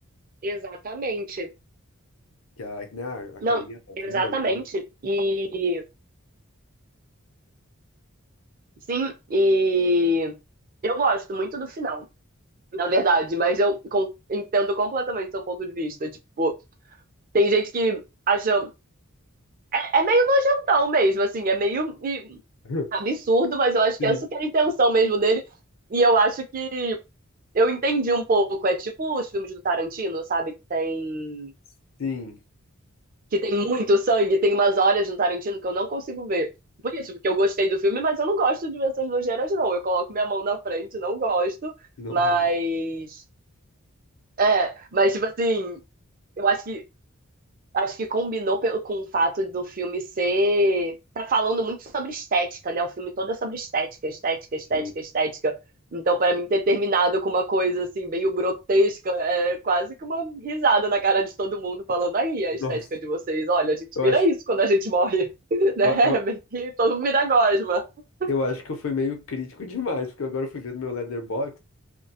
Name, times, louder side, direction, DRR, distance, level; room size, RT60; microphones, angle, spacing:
voice 1, 0.4-1.5 3.4-3.6 4.0-5.8 8.9-10.3 10.8-12.0 12.7-16.1 16.4-16.5 17.3-18.0 18.3-18.7 19.7-22.4 22.9-25.4 25.9-27.0 27.5-31.5 33.3-36.5 36.8-41.7 42.1-43.2 44.4-45.8 46.4-46.8 47.7-55.5 55.9-67.8 68.2-68.3, right 2 dB, 40° right, 0.5 m, -24 dB
voice 2, 2.6-3.8 4.1-4.6 22.6-22.9 24.0-24.2 32.0-32.4 42.0-42.4 54.7-54.9 62.6-62.8 64.0-64.2 65.8-66.2 68.3-71.6, left 3 dB, 70° left, 0.6 m, -30 dB
2.3 x 2.2 x 2.7 m
head